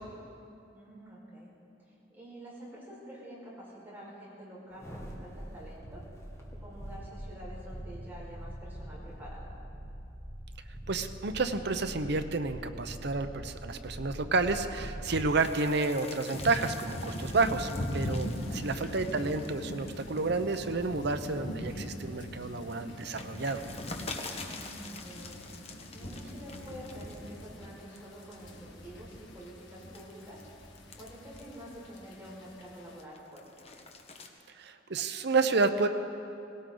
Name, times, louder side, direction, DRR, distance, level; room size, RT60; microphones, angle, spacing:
voice 1, 0.7-1.5 1.8-6.0 6.6-9.6 18.3-18.7 24.4-30.4 31.0-33.7, equal, 10° right, -7 dB, 4.9 m, -48 dB
sound 1, 4.7-15.4 15.8-15.9, equal, 15° left, 1.8 m, -43 dB
voice 2, 10.9-23.6 34.6-35.9, right 3 dB, 65° right, 9 dB, 0.8 m, -30 dB
sound 2, 15.4-21.3 21.8-27.6 27.9-28.4 29.0-32.3 32.7-34.3, left 3 dB, 35° left, 1.1 m, -47 dB
sound 3, 16.3-33.0, left 1 dB, 70° left, 1.8 m, -41 dB
18.5 x 18.0 x 3.9 m, 2.7 s
head